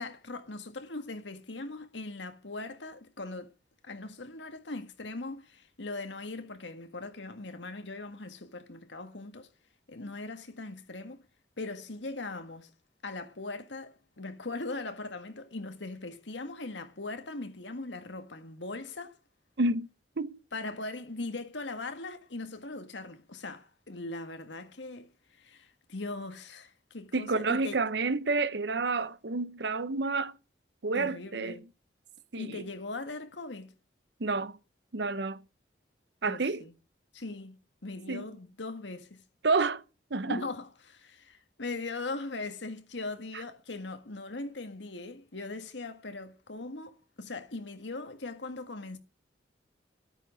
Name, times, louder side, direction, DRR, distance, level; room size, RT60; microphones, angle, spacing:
voice 1, 0.0-3.5 3.8-9.5 9.9-11.2 11.6-12.7 13.0-19.2 20.5-27.8 30.9-31.6 32.4-33.7 36.2-36.7 37.1-37.6 37.8-39.2 40.3-49.0, left 2 dB, 80° left, 1.7 m, -40 dB
voice 2, 19.6-19.9 20.2-20.4 27.1-30.3 30.8-31.6 32.3-32.6 34.2-34.6 34.9-35.4 36.2-36.6 38.1-38.3 39.4-39.8 40.1-40.4, right 3 dB, 65° right, 0.8 m, -29 dB
13.0 x 8.9 x 6.0 m
head